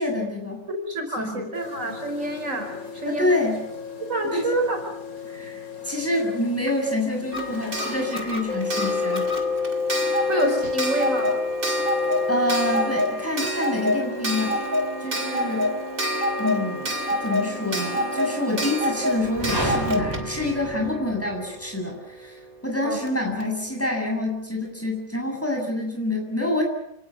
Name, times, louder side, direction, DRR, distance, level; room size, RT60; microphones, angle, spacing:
voice 1, 0.0-0.6 1.2-1.5 3.1-3.6 4.3-4.4 5.3-9.3 12.3-14.6 15.0-15.7 16.4-16.9 17.2-26.6, left 1 dB, 10° left, 1 dB, 7.5 m, -27 dB
voice 2, 0.7-3.3 4.0-4.8 10.3-11.4 22.8-23.0, right 1 dB, 65° right, 4 dB, 5.3 m, -27 dB
sound 1, 1.5-8.2 8.5-12.8 13.1-19.3, left 5 dB, 90° left, 3.9 m, -32 dB
Clock, 7.3-21.9 23.1-23.2 23.4-23.5, equal, 40° right, 2.9 m, -28 dB
sound 2, 19.2-21.3, right 1 dB, 15° right, 6.7 m, -30 dB
28.5 x 19.0 x 8.5 m, 0.82 s
omnidirectional pair, 1.5 m